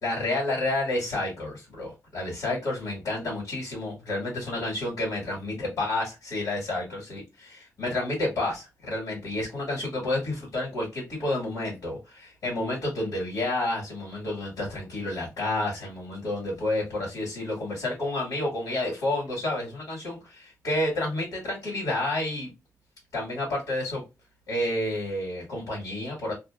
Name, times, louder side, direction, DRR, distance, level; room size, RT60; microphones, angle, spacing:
voice 1, 0.0-22.5 23.1-24.0 24.5-26.3, left 2 dB, 85° left, -4 dB, 1.6 m, -30 dB
2.7 x 2.6 x 2.3 m, 0.25 s
wide cardioid pair, 135°, 6 cm